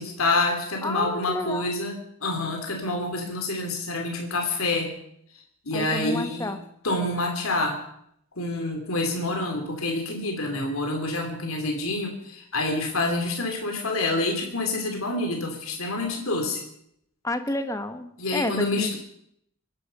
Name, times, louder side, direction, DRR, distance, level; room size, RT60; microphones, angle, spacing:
voice 1, 0.0-4.9 5.6-6.5 6.8-7.8 8.4-16.6 18.2-19.0, left 2 dB, 75° left, 3 dB, 2.8 m, -27 dB
voice 2, 0.8-1.7 5.7-6.6 17.2-19.0, left 2 dB, 15° left, 9 dB, 1.0 m, -30 dB
23.5 x 10.5 x 5.4 m, 0.72 s
head